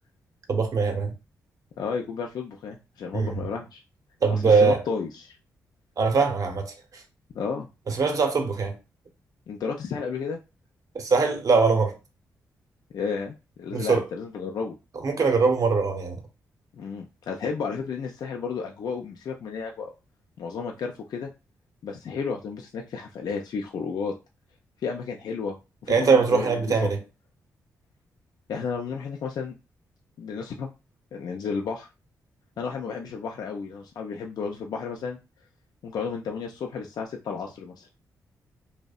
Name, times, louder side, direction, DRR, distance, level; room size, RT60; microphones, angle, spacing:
voice 1, 0.5-1.1 3.1-3.3 4.2-4.8 6.0-6.7 7.9-8.7 10.9-12.0 13.7-14.0 15.0-16.2 25.9-27.0, right 4 dB, 55° right, 0.7 m, -22 dB
voice 2, 1.8-3.8 4.3-5.4 7.3-7.7 9.5-10.4 12.9-14.8 16.7-19.9 20.4-21.3 21.8-24.2 24.8-25.6 25.8-26.9 28.5-29.5 30.2-30.7 31.1-31.9 32.6-35.2 35.8-37.9, left 5 dB, 65° left, 0.4 m, -32 dB
2.6 x 2.0 x 2.3 m
supercardioid pair, 50°, 7 cm